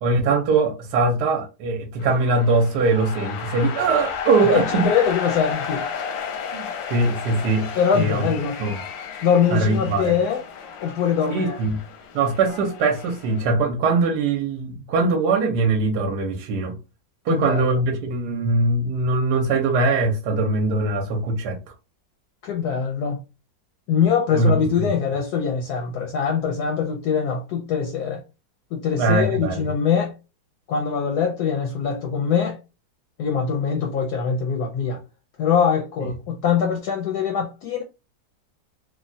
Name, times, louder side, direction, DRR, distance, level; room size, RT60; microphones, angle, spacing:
voice 1, 0.0-4.9 6.5-8.2 8.6-8.8 9.5-10.2 11.3-11.8 12.1-16.8 17.2-21.6 24.3-24.9 29.0-29.6, right 3 dB, 70° right, 1.2 m, -22 dB
sound 1, 2.0-13.5, left 6 dB, 90° left, 1.4 m, -33 dB
voice 2, 4.4-5.9 7.8-8.6 9.2-10.4 10.8-11.6 17.3-17.7 22.4-23.2 23.9-28.2 28.7-30.1 30.7-32.6 33.2-35.0 35.4-37.8, left 7 dB, 70° left, 1.0 m, -23 dB
3.3 x 2.2 x 2.6 m
omnidirectional pair, 2.0 m